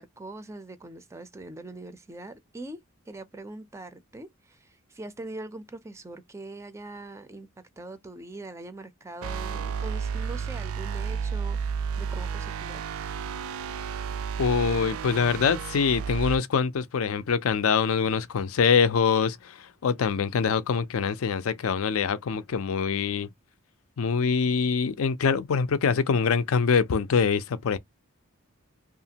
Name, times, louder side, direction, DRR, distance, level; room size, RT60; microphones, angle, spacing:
voice 1, 0.0-2.8 3.1-7.5 7.8-12.8, right 2 dB, 15° right, 0.4 m, -42 dB
sound 1, 9.2-16.4, right 6 dB, 80° right, 0.4 m, -32 dB
voice 2, 14.4-23.3 24.0-27.8, left 6 dB, 75° left, 0.4 m, -24 dB
2.8 x 2.4 x 2.8 m
head